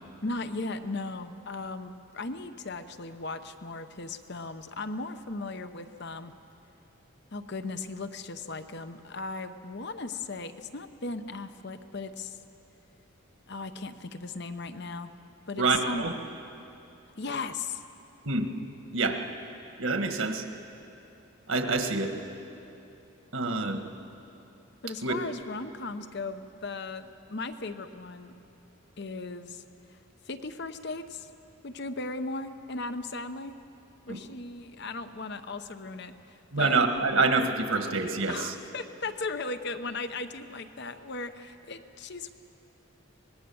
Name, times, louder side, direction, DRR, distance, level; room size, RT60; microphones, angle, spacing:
voice 1, 0.2-6.3 7.3-12.4 13.5-15.1 15.5-16.1 17.2-17.8 24.8-28.3 29.0-29.6 30.3-31.3 31.6-33.6 34.1-36.8 38.3-42.3, left 3 dB, 50° left, 10 dB, 0.8 m, -37 dB
voice 2, 15.6-16.1 18.2-18.4 18.9-19.2 19.8-20.4 21.5-22.2 23.3-23.8 25.0-25.1 34.1-34.2 36.5-38.5, right 3 dB, 70° right, 5 dB, 1.6 m, -26 dB
24.5 x 19.5 x 7.1 m, 2.8 s
head